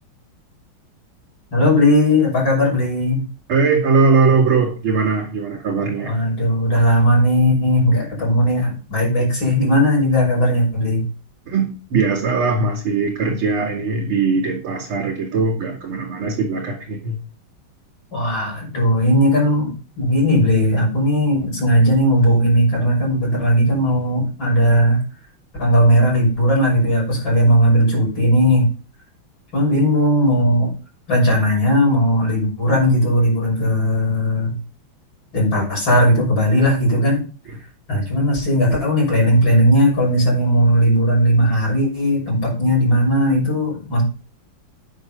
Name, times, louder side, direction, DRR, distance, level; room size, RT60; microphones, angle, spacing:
voice 1, 1.5-3.2 5.8-11.0 18.1-25.0 25.6-28.7 29.5-30.7 31.1-34.6 35.3-37.3 37.9-44.0, equal, 60° left, -2 dB, 6.9 m, -17 dB
voice 2, 3.5-6.2 11.5-17.2 29.7-29.9, right 4 dB, 85° right, -5 dB, 3.3 m, -20 dB
9.8 x 6.2 x 5.4 m, 0.37 s
omnidirectional pair, 2.3 m